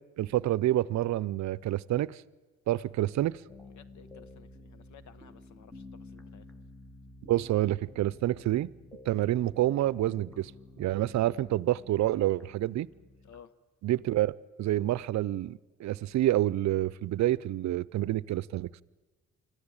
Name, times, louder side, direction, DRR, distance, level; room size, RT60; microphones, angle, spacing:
voice 1, 0.2-2.2 2.7-3.4 7.3-8.7 9.0-10.5 10.8-12.9 13.8-14.3 14.6-18.7, right 14 dB, 65° right, 20 dB, 0.6 m, -28 dB
sound 1, 3.5-13.4, left 2 dB, 5° left, 1.3 m, -52 dB
voice 2, 3.7-6.5 13.2-13.5, left 8 dB, 70° left, 15 dB, 1.1 m, -55 dB
25.0 x 14.5 x 8.8 m, 1.3 s
cardioid pair, 90°, 30 cm